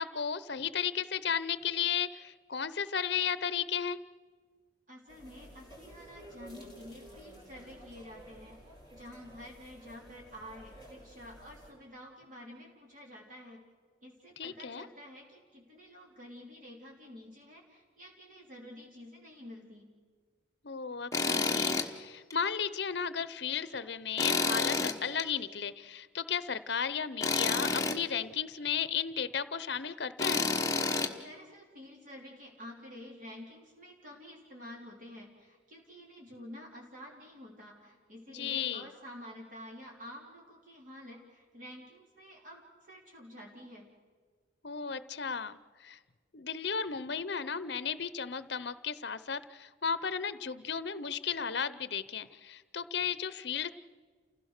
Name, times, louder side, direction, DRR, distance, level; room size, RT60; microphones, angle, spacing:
voice 1, 0.0-4.0 14.4-14.9 20.6-30.5 38.3-38.9 44.6-46.0 46.3-53.7, left 7 dB, 60° left, 15 dB, 0.8 m, -34 dB
voice 2, 4.9-8.6 8.9-13.6 14.0-19.9 31.1-43.9, left 1 dB, 40° right, -2 dB, 3.6 m, -49 dB
sound 1, 5.1-11.7, equal, 25° right, 4.7 m, -52 dB
Tools, 21.1-21.9 22.3-22.4 24.2-25.2 27.2-28.0 30.2-31.1, left 4 dB, 15° left, 1.0 m, -29 dB
29.5 x 16.5 x 6.6 m, 1.5 s
head